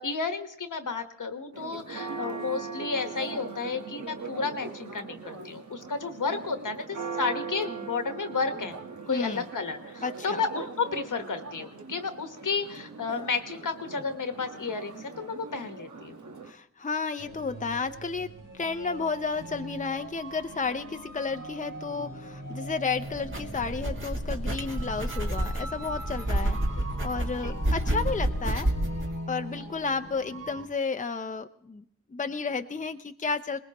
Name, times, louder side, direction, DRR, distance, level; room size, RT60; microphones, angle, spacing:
voice 1, 0.0-8.8 9.1-16.2 27.3-27.5 29.5-29.7, left 4 dB, 80° left, 6 dB, 1.4 m, -32 dB
Church bell, 1.5-16.5, right 4 dB, 70° right, 1.4 m, -40 dB
voice 2, 9.1-9.5 10.0-10.4 16.5-26.6 27.0-28.7 29.3-31.8 32.1-33.6, left 4 dB, 25° left, 8 dB, 0.6 m, -32 dB
sound 1, 17.2-30.7, right 1 dB, 85° right, 2.6 m, -41 dB
sound 2, 23.0-29.1, right 1 dB, 40° right, 2.0 m, -29 dB
21.0 x 20.0 x 3.0 m, 0.69 s
wide cardioid pair, 65°, 31 cm